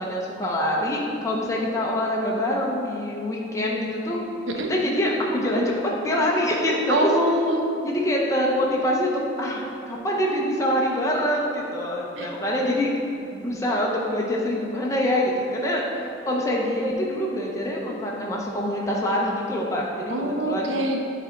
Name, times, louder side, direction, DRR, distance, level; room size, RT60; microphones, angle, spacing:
voice 1, 0.0-4.2 4.7-5.7 6.0-7.1 7.8-12.9 13.3-20.8, left 1 dB, 15° left, -3 dB, 0.6 m, -25 dB
voice 2, 6.9-7.6 12.2-12.3 20.1-21.0, right 1 dB, 75° right, 2 dB, 0.8 m, -24 dB
9.6 x 3.4 x 3.7 m, 2.8 s
head